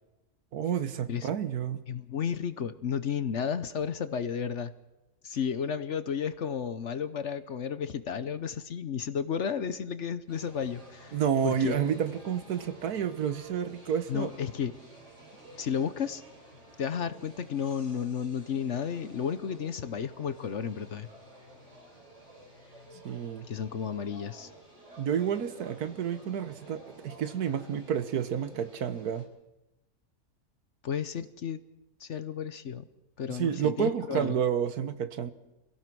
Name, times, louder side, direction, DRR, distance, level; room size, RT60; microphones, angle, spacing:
voice 1, 0.5-1.8 11.1-14.3 23.0-23.5 25.0-29.3 33.3-35.3, right 8 dB, 75° right, 12 dB, 1.6 m, -30 dB
voice 2, 1.9-4.7 5.2-11.8 14.1-14.7 15.6-16.2 16.8-21.1 23.5-24.5 30.8-31.6 32.0-32.9 33.2-34.4, left 7 dB, 55° left, 13 dB, 1.1 m, -32 dB
sound 1, 10.3-29.2, right 1 dB, 50° right, 4.5 m, -52 dB
26.0 x 17.0 x 6.1 m, 0.99 s
omnidirectional pair, 1.6 m